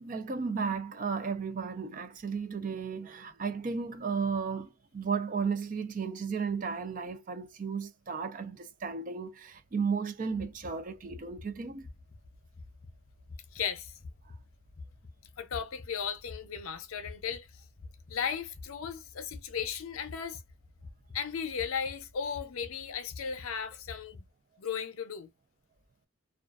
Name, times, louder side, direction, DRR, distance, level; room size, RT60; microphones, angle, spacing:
voice 1, 0.0-11.9, right 5 dB, 40° right, 0.4 m, -34 dB
sound 1, 10.3-24.3, left 3 dB, 35° left, 0.6 m, -50 dB
voice 2, 13.5-13.9 15.4-17.5 18.1-20.4 21.1-24.2 24.6-25.3, left 7 dB, 85° left, 0.5 m, -36 dB
2.3 x 2.3 x 2.3 m
head